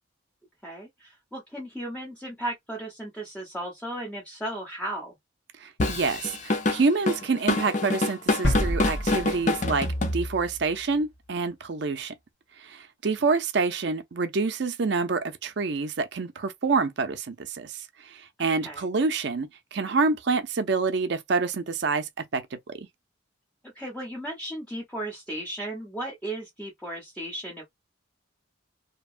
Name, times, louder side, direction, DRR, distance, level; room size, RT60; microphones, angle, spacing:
voice 1, 0.6-5.1 18.4-18.8 23.7-27.6, right 1 dB, 5° left, 0.9 m, -35 dB
voice 2, 5.6-9.9 10.1-12.1 12.6-22.9, right 4 dB, 55° right, 0.5 m, -27 dB
Drum kit / Drum, 5.8-10.6, left 2 dB, 40° left, 0.5 m, -26 dB
sound 1, 8.4-10.3 10.6-10.7, equal, 65° left, 1.1 m, -28 dB
2.8 x 2.1 x 2.4 m
head